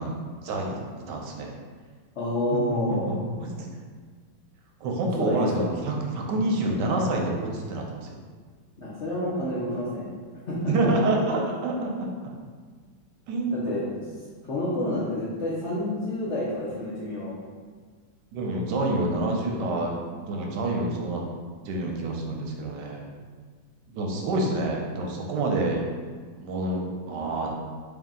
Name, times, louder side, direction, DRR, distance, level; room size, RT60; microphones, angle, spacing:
voice 1, 0.0-1.5 2.5-3.7 4.8-8.1 10.7-12.1 13.3-13.6 18.3-21.2 21.6-23.0 23.9-25.8 26.4-27.5, right 2 dB, 70° right, 0 dB, 1.1 m, -28 dB
voice 2, 2.2-3.1 5.2-5.7 8.8-10.0 10.5-10.9 13.5-13.8 14.4-17.3, left 1 dB, 70° left, -8 dB, 0.6 m, -29 dB
3.4 x 2.7 x 3.7 m, 1.5 s
omnidirectional pair, 2.2 m